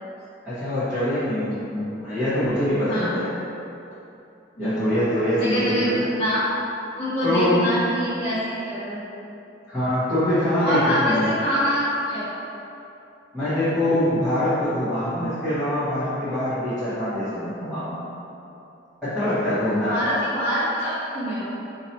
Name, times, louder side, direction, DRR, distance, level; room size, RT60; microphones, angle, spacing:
voice 1, 0.4-3.3 4.6-6.0 7.2-7.6 9.7-11.3 13.3-18.0 19.0-20.0, left 1 dB, ahead, -20 dB, 1.1 m, -24 dB
voice 2, 4.6-4.9 5.4-6.5 7.0-9.0 10.6-11.1 11.4-12.3 19.7-21.5, equal, 30° left, -15 dB, 0.8 m, -25 dB
2.9 x 2.8 x 4.2 m, 2.8 s
head